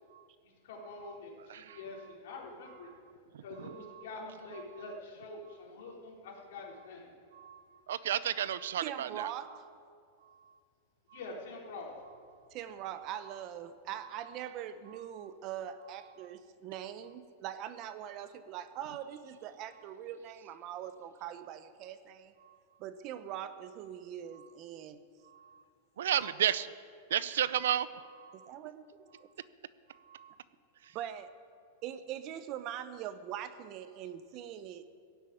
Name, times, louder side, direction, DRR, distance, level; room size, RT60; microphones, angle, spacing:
voice 1, 0.4-2.9 3.4-7.1 11.1-11.9, left 3 dB, 70° left, -1 dB, 3.9 m, -46 dB
voice 2, 3.3-4.0 7.3-9.3 22.4-22.5 25.3-25.6 26.0-26.7 27.1-28.5 30.1-30.3 30.8-30.9, right 10 dB, 80° right, 16 dB, 0.6 m, -33 dB
voice 3, 8.8-9.7 12.5-22.3 22.8-25.0 26.2-26.3 28.3-29.3 30.9-31.3 31.8-34.9, right 10 dB, 35° right, 12 dB, 0.8 m, -42 dB
16.0 x 8.1 x 9.2 m, 2.2 s
supercardioid pair, 155°, 0 cm